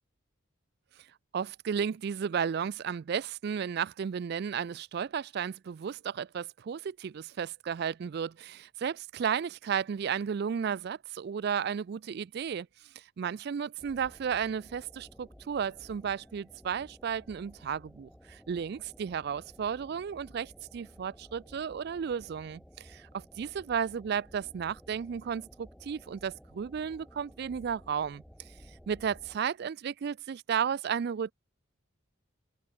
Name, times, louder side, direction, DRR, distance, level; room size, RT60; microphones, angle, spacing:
voice 1, 1.3-12.7 13.0-28.2 28.9-31.3, right 7 dB, 50° right, 0.3 m, -33 dB
sound 1, 13.8-29.4, equal, ahead, 2.0 m, -55 dB
head